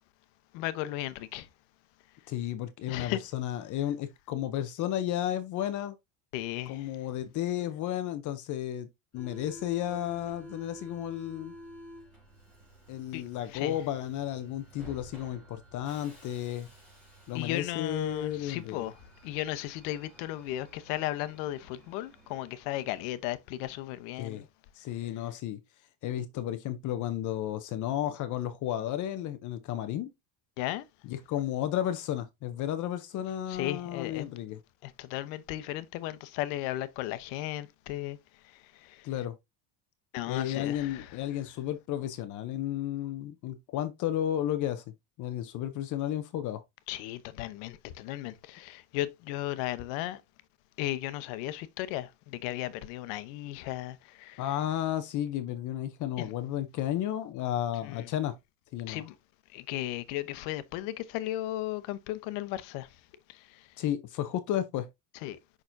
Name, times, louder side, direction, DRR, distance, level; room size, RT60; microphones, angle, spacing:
voice 1, 0.5-1.5 2.9-3.2 6.3-6.9 13.1-13.2 13.5-13.8 17.3-18.9 19.2-24.4 30.6-30.9 33.5-34.2 34.8-38.2 38.8-39.0 40.1-41.1 46.9-50.2 50.8-54.4 56.2-56.3 57.9-58.0 58.9-59.1 59.5-62.9 65.2-65.4, left 15 dB, 85° left, 0.9 m, -35 dB
voice 2, 2.3-6.0 6.7-8.9 9.1-11.5 12.9-16.7 17.3-18.9 24.2-24.5 24.7-25.6 26.0-30.1 31.0-34.6 39.0-39.3 40.3-44.8 45.2-46.6 54.4-58.4 58.7-59.0 63.8-64.9, left 11 dB, 45° left, 0.6 m, -33 dB
Subway metro underground, 9.1-23.5, equal, ahead, 4.4 m, -51 dB
6.6 x 6.0 x 2.6 m
cardioid pair, 155°, 42 cm